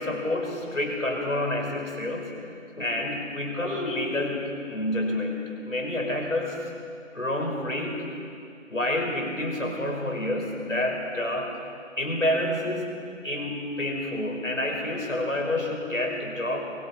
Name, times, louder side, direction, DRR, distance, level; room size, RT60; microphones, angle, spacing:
voice 1, 0.0-2.4 2.8-6.6 7.1-8.1 8.7-11.6 12.0-13.0 13.2-16.6, left 1 dB, 85° left, 1 dB, 5.5 m, -28 dB
23.0 x 20.5 x 5.7 m, 2.4 s
figure-of-eight pair, 160°, 38 cm